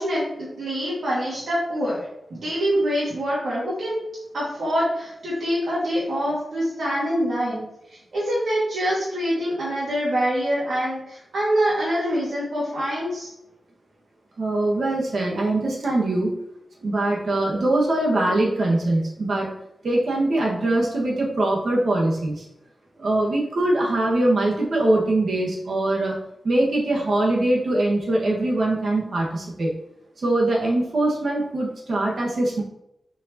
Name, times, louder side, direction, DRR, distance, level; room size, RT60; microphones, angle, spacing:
voice 1, 0.0-2.1 2.4-4.0 4.3-7.6 8.1-13.3, equal, 85° right, -8 dB, 2.1 m, -25 dB
voice 2, 14.4-16.3 16.8-19.5 19.8-22.4 23.0-29.7 30.2-32.6, right 2 dB, 60° right, -2 dB, 1.7 m, -22 dB
6.7 x 5.0 x 3.0 m, 0.84 s
wide cardioid pair, 170°, 0 cm